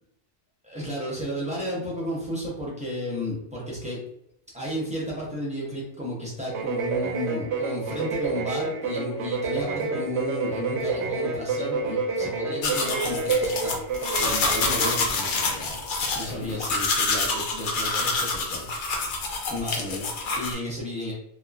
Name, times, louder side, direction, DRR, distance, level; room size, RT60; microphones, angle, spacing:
voice 1, 0.6-4.0 4.5-13.8 14.1-19.1 19.5-21.1, equal, 10° right, -5 dB, 0.6 m, -33 dB
sound 1, 6.5-15.0, right 4 dB, 80° right, 0.9 m, -29 dB
sound 2, 12.6-20.5, left 3 dB, 60° left, 0.6 m, -27 dB
3.0 x 2.2 x 2.4 m, 0.77 s
omnidirectional pair, 1.2 m